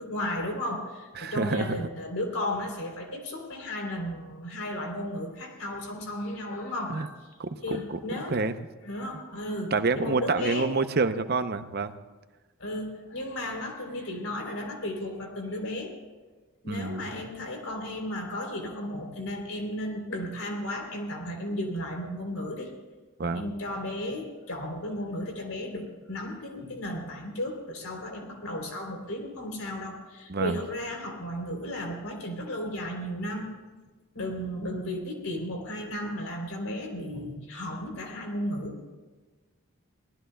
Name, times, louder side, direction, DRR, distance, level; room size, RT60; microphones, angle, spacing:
voice 1, 0.0-7.1 7.6-8.4 8.8-10.8 12.6-15.9 16.6-22.7 23.3-33.5 34.1-38.8, left 1 dB, 80° left, 2 dB, 3.4 m, -34 dB
voice 2, 1.2-1.8 6.9-7.1 7.4-8.0 8.3-8.5 9.7-11.9 16.7-17.1 23.2-23.5 30.3-30.6, right 3 dB, 45° right, 10 dB, 0.6 m, -28 dB
25.0 x 18.0 x 2.3 m, 1.3 s
head